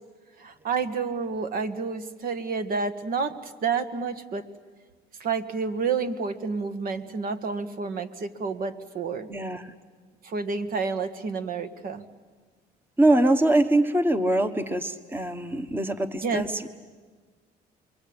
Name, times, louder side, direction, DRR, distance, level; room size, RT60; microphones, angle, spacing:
voice 1, 0.4-4.4 5.2-9.3 10.2-12.0 16.2-16.5, right 5 dB, 60° right, 10 dB, 1.6 m, -29 dB
voice 2, 9.3-9.7 13.0-16.7, right 1 dB, 10° right, 10 dB, 1.2 m, -23 dB
28.0 x 23.0 x 8.8 m, 1.4 s
cardioid pair, 110°, 17 cm